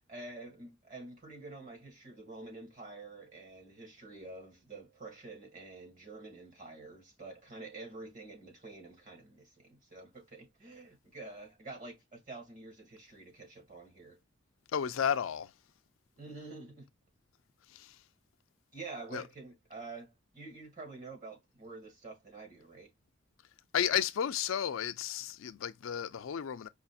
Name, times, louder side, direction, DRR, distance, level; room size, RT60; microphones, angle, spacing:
voice 1, 0.0-14.2 16.2-16.9 18.7-22.9, right 3 dB, 40° right, 2.0 m, -48 dB
voice 2, 14.7-15.5 17.7-18.0 19.1-19.2 23.7-26.7, left 8 dB, 90° left, 0.4 m, -33 dB
5.0 x 2.6 x 2.3 m
head